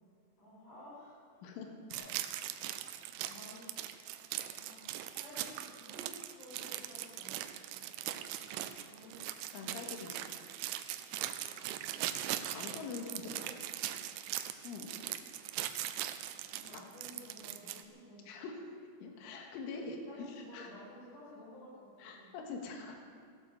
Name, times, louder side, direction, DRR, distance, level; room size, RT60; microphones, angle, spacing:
voice 1, 0.4-1.6 1.9-2.1 2.6-2.7 3.3-3.7 4.4-7.4 8.9-9.2 11.5-11.8 13.0-14.3 16.5-18.5 19.7-22.3, left 1 dB, 40° left, -8 dB, 6.8 m, -54 dB
voice 2, 1.4-2.1 9.5-10.3 12.5-13.3 14.6-14.9 16.7-16.8 18.3-18.5 19.0-20.7 22.0-23.0, left 4 dB, 75° left, 2 dB, 4.1 m, -44 dB
sound 1, 1.9-17.8, right 12 dB, 85° right, 3.4 m, -40 dB
17.0 x 12.5 x 6.8 m, 2.2 s
omnidirectional pair, 5.9 m